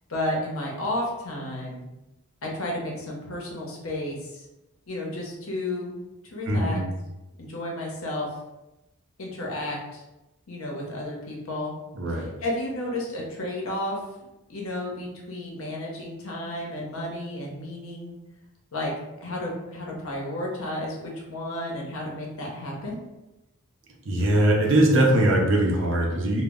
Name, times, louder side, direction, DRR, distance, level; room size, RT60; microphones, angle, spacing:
voice 1, 0.1-1.9 2.4-4.5 4.9-6.0 6.2-6.8 7.4-8.3 9.2-10.0 10.5-11.8 12.1-14.0 14.5-18.2 18.7-18.9 19.2-23.0, left 1 dB, 80° left, -2 dB, 0.7 m, -32 dB
voice 2, 6.5-6.8 11.9-12.3 24.1-26.4, right 1 dB, 60° right, -1 dB, 0.6 m, -21 dB
2.2 x 2.0 x 3.5 m, 0.98 s
head